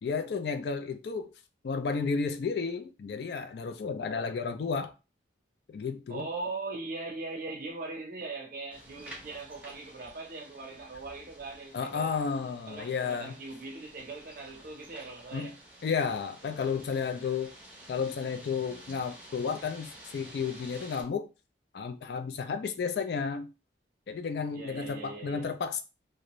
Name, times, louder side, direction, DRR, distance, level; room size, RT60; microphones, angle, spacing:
voice 1, 0.0-1.3 1.6-4.9 5.7-6.3 11.7-13.3 15.3-15.5 15.8-17.5 17.9-21.3 21.7-23.5 24.1-25.8, left 5 dB, 60° left, 0.3 m, -32 dB
voice 2, 6.1-12.1 12.7-15.6 24.5-25.5, right 3 dB, 50° right, 0.6 m, -40 dB
sound 1, 8.7-21.0, right 1 dB, 5° right, 0.6 m, -51 dB
2.5 x 2.1 x 2.9 m
head